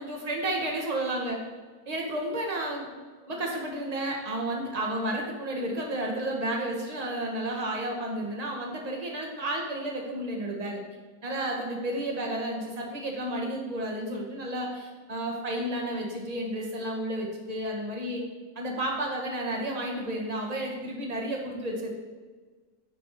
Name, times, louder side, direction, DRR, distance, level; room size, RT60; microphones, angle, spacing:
voice 1, 0.0-1.4 1.9-2.9 3.3-10.8 11.2-18.2 18.5-21.9, right 1 dB, 25° right, -1 dB, 1.2 m, -32 dB
8.9 x 4.2 x 4.5 m, 1.4 s
omnidirectional pair, 1.8 m